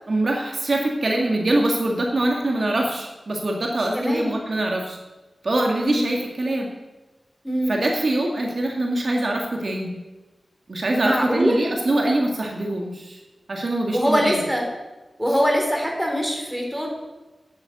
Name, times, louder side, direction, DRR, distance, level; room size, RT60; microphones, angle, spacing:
voice 1, 0.1-5.0 5.4-6.7 7.7-10.0 10.7-13.2 13.5-14.4, right 1 dB, 60° right, 0 dB, 1.9 m, -23 dB
voice 2, 3.9-4.3 5.7-6.1 7.4-7.8 11.0-11.6 13.9-14.6 15.2-16.9, equal, 5° right, 0 dB, 4.2 m, -23 dB
9.5 x 9.0 x 8.1 m, 1.1 s
cardioid pair, 50°, 0 cm